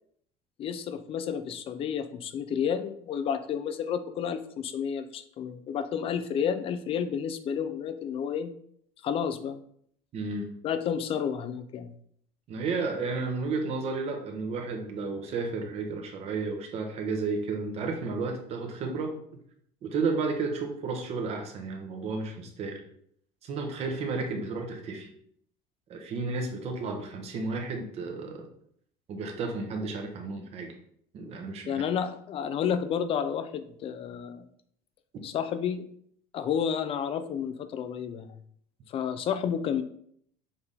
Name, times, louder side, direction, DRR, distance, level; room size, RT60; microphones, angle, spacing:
voice 1, 0.6-8.5 9.0-9.6 10.6-11.9 31.7-34.5 35.2-35.9 36.3-38.3 38.9-39.8, left 8 dB, 35° left, 11 dB, 0.6 m, -31 dB
voice 2, 10.1-10.5 12.5-19.1 19.8-22.8 23.4-25.1 25.9-28.5 29.1-30.7 31.1-31.8, right 4 dB, 40° right, 3 dB, 1.3 m, -32 dB
7.0 x 3.5 x 4.1 m, 0.66 s
cardioid pair, 150°, 15 cm